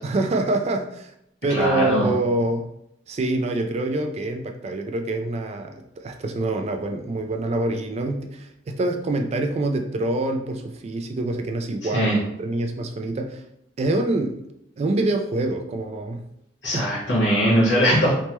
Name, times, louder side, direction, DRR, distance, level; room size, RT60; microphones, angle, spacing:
voice 1, 0.0-1.1 1.4-2.7 3.1-12.1 12.4-13.4 13.8-14.4 14.8-16.2 16.7-17.0, right 2 dB, 35° right, 5 dB, 0.3 m, -25 dB
voice 2, 1.5-2.1 11.9-12.2 16.6-18.1, equal, 85° left, -6 dB, 1.2 m, -20 dB
3.1 x 2.1 x 2.9 m, 0.77 s
head